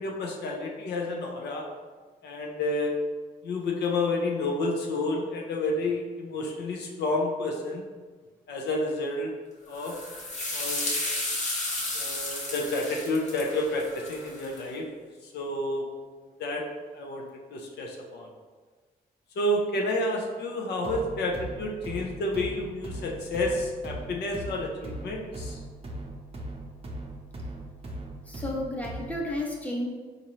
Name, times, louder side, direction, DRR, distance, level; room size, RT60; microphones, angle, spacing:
voice 1, 0.0-1.6 2.2-2.9 3.4-7.8 8.5-9.3 9.7-10.0 10.5-10.9 11.9-14.9 15.3-15.8 16.4-16.6 16.9-18.3 19.4-25.6, left 2 dB, 80° left, 0 dB, 0.6 m, -30 dB
sound 1, 9.7-14.6, left 2 dB, 45° left, 0.9 m, -33 dB
sound 2, 20.8-29.3, right 1 dB, 35° right, 0.6 m, -39 dB
voice 2, 28.3-29.9, left 1 dB, 10° left, -1 dB, 0.7 m, -32 dB
4.0 x 2.6 x 3.0 m, 1.4 s
cardioid pair, 70°, 17 cm